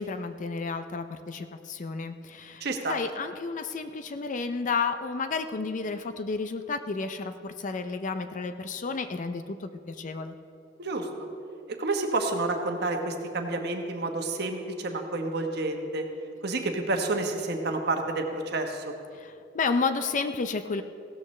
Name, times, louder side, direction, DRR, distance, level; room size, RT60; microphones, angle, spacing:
voice 1, 0.0-2.6 2.9-10.3 19.1-20.8, left 4 dB, 40° left, 9 dB, 0.5 m, -31 dB
voice 2, 2.6-2.9 10.8-11.1 11.8-16.0 16.4-18.8, right 2 dB, 60° right, 4 dB, 1.2 m, -29 dB
16.0 x 13.0 x 3.2 m, 2.5 s
head